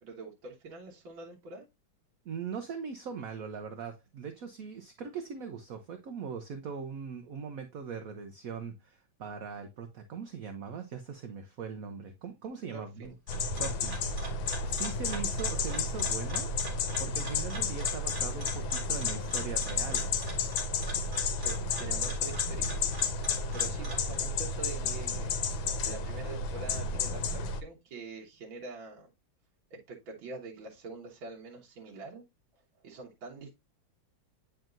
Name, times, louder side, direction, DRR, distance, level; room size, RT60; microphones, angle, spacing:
voice 1, 0.0-1.7 12.7-13.1 21.4-22.8 23.1-25.4 25.8-29.1 29.7-32.2 32.8-33.6, right 3 dB, 85° right, 2.1 m, -45 dB
voice 2, 2.2-13.1 13.6-14.3 14.6-16.5 17.0-20.1, right 6 dB, 60° right, 1.0 m, -40 dB
sound 1, 13.0-24.1, right 1 dB, 35° right, 2.6 m, -44 dB
sound 2, 13.3-27.6, left 4 dB, 85° left, 1.5 m, -32 dB
9.0 x 4.5 x 2.5 m
omnidirectional pair, 2.1 m